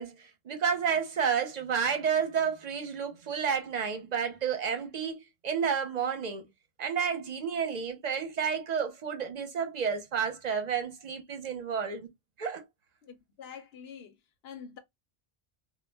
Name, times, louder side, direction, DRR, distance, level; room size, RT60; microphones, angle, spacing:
voice 1, 0.0-6.5 6.8-12.1 12.4-12.6, right 7 dB, 50° right, 0.7 m, -31 dB
voice 2, 13.0-14.2 14.4-14.8, left 7 dB, 80° left, 0.9 m, -46 dB
2.2 x 2.1 x 3.2 m
omnidirectional pair, 1.0 m